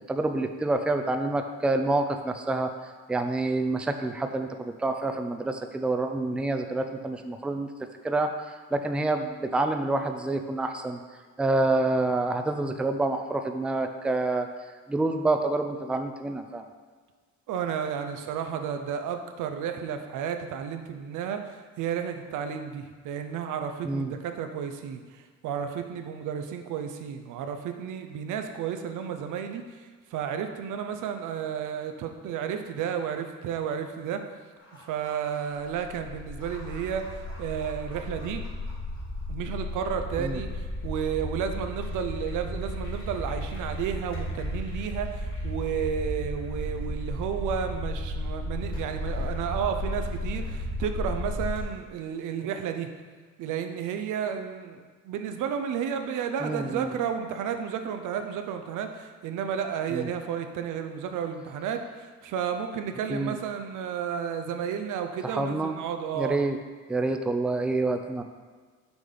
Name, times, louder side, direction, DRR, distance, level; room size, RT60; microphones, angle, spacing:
voice 1, 0.1-2.7 3.1-7.7 8.0-11.0 11.4-14.5 14.9-16.6 23.8-24.1 40.2-40.4 56.4-56.9 59.9-60.1 63.1-63.4 65.2-65.7 66.1-66.6 66.9-68.2, right 2 dB, 5° right, 6 dB, 0.4 m, -27 dB
voice 2, 17.5-34.2 34.9-37.1 37.4-38.4 39.3-52.9 53.4-66.4, right 8 dB, 85° right, 6 dB, 0.6 m, -32 dB
sound 1, 34.6-51.6, left 1 dB, 40° left, 1.9 m, -34 dB
6.1 x 3.4 x 5.4 m, 1.5 s
cardioid pair, 90°, 30 cm